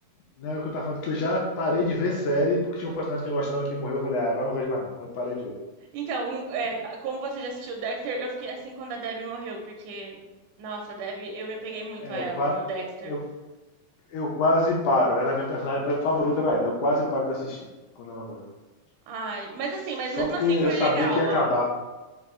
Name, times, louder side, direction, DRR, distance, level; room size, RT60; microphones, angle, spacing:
voice 1, 0.4-5.6 11.7-12.6 13.1-13.2 14.1-17.7 18.0-18.4 20.1-21.7, left 1 dB, 75° left, -2 dB, 1.8 m, -26 dB
voice 2, 5.9-10.2 10.6-13.1 19.1-21.7, right 3 dB, 85° right, 1 dB, 1.8 m, -33 dB
5.4 x 2.4 x 3.5 m, 1.2 s
omnidirectional pair, 4.0 m